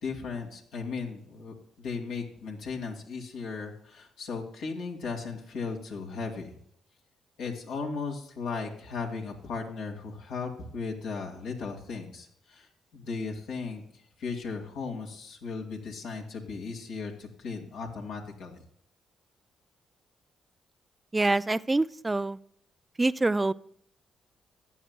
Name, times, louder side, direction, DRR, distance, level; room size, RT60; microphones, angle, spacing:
voice 1, 0.0-6.5 7.4-13.8 14.2-18.6, left 4 dB, 75° left, 0 dB, 2.2 m, -36 dB
voice 2, 21.1-22.4 23.0-23.5, right 2 dB, 20° right, 17 dB, 0.4 m, -25 dB
14.5 x 9.5 x 2.2 m, 0.63 s
hypercardioid pair, 45°, 0 cm